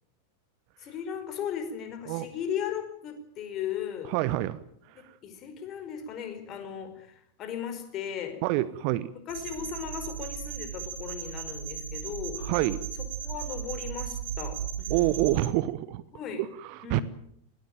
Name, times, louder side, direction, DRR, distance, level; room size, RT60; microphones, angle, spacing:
voice 1, 0.8-4.1 4.9-8.4 9.1-12.4 13.2-15.1 16.1-16.4 16.8-17.0, left 8 dB, 35° left, 8 dB, 4.9 m, -37 dB
voice 2, 4.1-4.6 5.1-5.2 8.4-9.1 12.4-12.8 14.9-16.0 16.4-17.0, right 16 dB, 45° right, 17 dB, 0.9 m, -27 dB
sound 1, 9.3-15.5, right 8 dB, 65° right, 4.4 m, -36 dB
21.0 x 19.0 x 9.1 m, 0.71 s
figure-of-eight pair, 90°, 0 cm